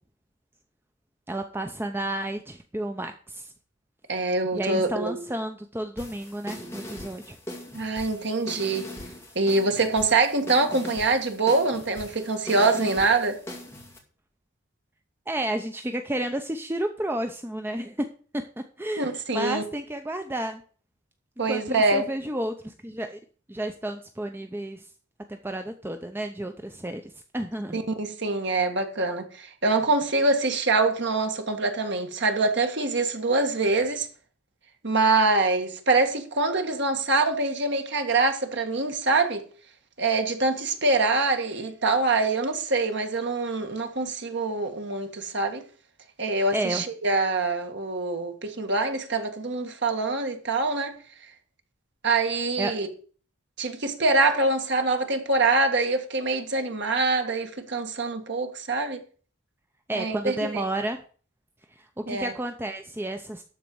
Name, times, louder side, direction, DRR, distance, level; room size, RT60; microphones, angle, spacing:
voice 1, 1.3-3.5 4.5-7.4 15.3-18.1 18.6-20.6 21.5-23.2 23.5-24.9 25.3-27.0 27.3-27.8 46.5-46.8 52.6-52.7 59.9-61.0 61.8-63.4, right 1 dB, 10° right, 0.6 m, -31 dB
voice 2, 4.1-5.3 7.7-8.9 9.3-13.4 19.0-19.6 21.4-22.1 27.7-34.1 34.8-39.4 40.0-45.6 46.2-51.0 52.0-52.9 53.6-59.0 59.9-60.7 62.1-62.3, right 3 dB, 55° right, 1.6 m, -24 dB
sound 1, 6.0-14.0, left 1 dB, 10° left, 2.4 m, -41 dB
12.5 x 4.4 x 7.8 m
head